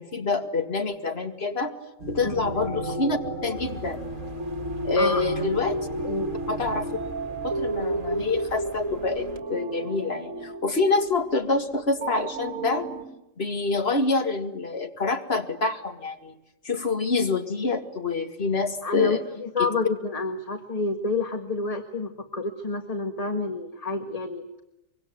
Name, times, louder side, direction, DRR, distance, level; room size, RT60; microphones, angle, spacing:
voice 1, 0.0-1.7 2.1-4.0 4.8-5.8 6.5-6.9 7.4-12.9 13.4-16.3 16.6-19.2 19.6-19.7, left 3 dB, 50° left, 6 dB, 2.4 m, -26 dB
sound 1, 2.0-13.0, right 1 dB, 65° right, 2.6 m, -32 dB
sound 2, 3.5-9.4, right 3 dB, 40° right, 2.1 m, -44 dB
voice 2, 18.8-24.4, left 3 dB, 25° left, 6 dB, 1.6 m, -29 dB
25.0 x 23.5 x 9.3 m, 0.87 s
omnidirectional pair, 1.4 m